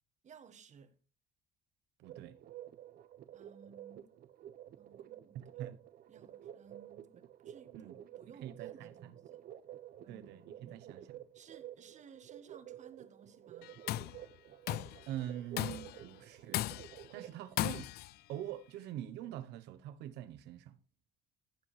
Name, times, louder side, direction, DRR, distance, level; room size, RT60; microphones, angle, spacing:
voice 1, 0.2-0.9 3.3-4.1 4.8-5.4 6.1-9.4 10.0-10.9 11.3-13.8, right 6 dB, 45° right, 1.5 m, -58 dB
sound 1, 2.0-17.4, right 12 dB, 60° right, 0.8 m, -51 dB
voice 2, 2.0-2.4 5.3-5.8 7.7-8.0 8.4-9.1 10.1-11.2 15.1-16.6 17.1-17.9 18.3-20.8, right 12 dB, 90° right, 1.0 m, -44 dB
Tools, 13.6-14.2 14.7-15.0 15.6-16.0 16.5-17.1 17.6-18.1, left 16 dB, 70° left, 0.4 m, -36 dB
16.0 x 7.4 x 3.2 m
cardioid pair, 110°, 17 cm